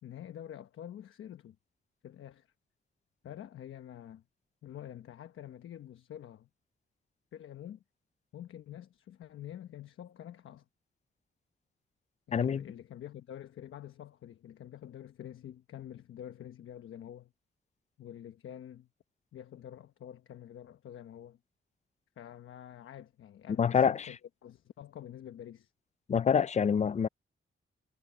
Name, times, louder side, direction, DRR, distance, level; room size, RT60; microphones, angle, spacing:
voice 1, 0.0-1.6 2.0-2.5 3.2-4.2 4.6-6.5 7.3-7.8 8.3-10.6 12.3-17.3 18.0-18.9 19.3-21.4 22.2-24.2 24.4-25.7, left 11 dB, 80° left, 1.1 m, -47 dB
voice 2, 12.3-12.6 23.6-24.1 26.1-27.1, left 7 dB, 35° left, 0.4 m, -26 dB
wide cardioid pair, 140°, 20 cm